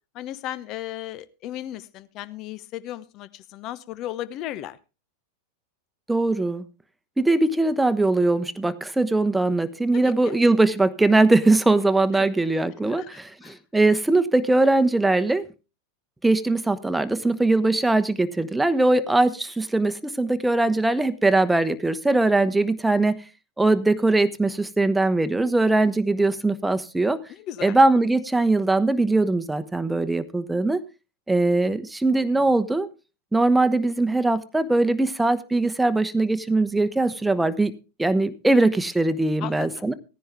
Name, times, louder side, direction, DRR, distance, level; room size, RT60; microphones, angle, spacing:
voice 1, 0.1-4.8 9.9-10.3 12.1-12.3 12.9-13.6 27.3-27.8 39.4-39.9, left 13 dB, 45° left, 16 dB, 1.0 m, -36 dB
voice 2, 6.1-6.6 7.2-15.4 16.2-23.2 23.6-27.2 27.6-30.8 31.3-32.9 33.3-37.7 38.0-39.9, right 2 dB, 5° right, 12 dB, 1.1 m, -21 dB
16.0 x 10.0 x 3.6 m, 0.31 s
hypercardioid pair, 95°, 0 cm